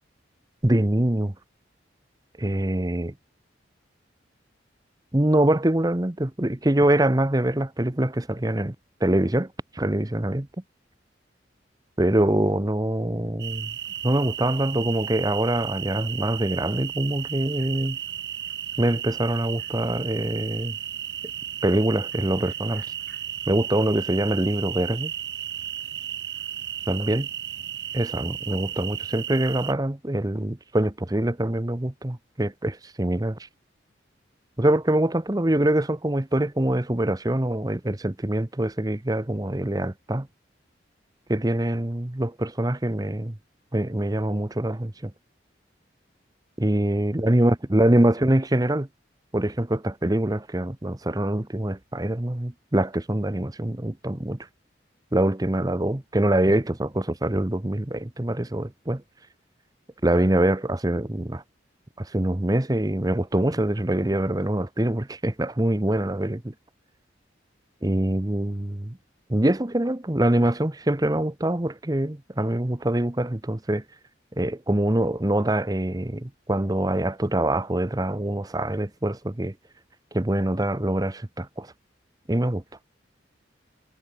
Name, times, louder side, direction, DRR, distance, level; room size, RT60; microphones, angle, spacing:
voice 1, 0.6-1.3 2.4-3.1 5.1-8.7 9.0-10.5 12.0-13.7 14.0-18.0 18.8-20.8 21.6-22.9 23.5-25.1 26.9-27.3 27.9-33.4 34.6-40.3 41.3-43.4 43.7-45.1 46.6-48.9 49.3-54.4 55.1-59.0 60.0-61.4 62.0-66.5 67.8-69.0 69.3-73.8 74.4-79.5 80.1-81.7 82.3-82.6, right 1 dB, 20° right, 0.9 m, -24 dB
sound 1, 13.4-29.7, right 10 dB, 60° right, 6.9 m, -34 dB
head